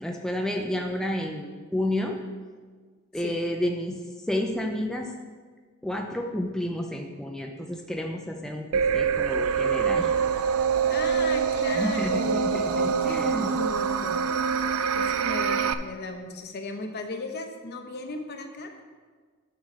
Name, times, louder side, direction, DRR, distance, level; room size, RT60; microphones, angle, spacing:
voice 1, 0.0-2.2 3.1-5.1 5.8-10.1 11.7-13.5, left 1 dB, 5° left, 1 dB, 0.5 m, -30 dB
sound 1, 8.7-15.7, right 6 dB, 70° right, 0.4 m, -25 dB
voice 2, 10.9-18.7, left 2 dB, 50° left, 5 dB, 0.9 m, -36 dB
sound 2, 12.2-15.1, left 1 dB, 30° left, 1.2 m, -46 dB
9.4 x 4.2 x 6.1 m, 1.5 s
head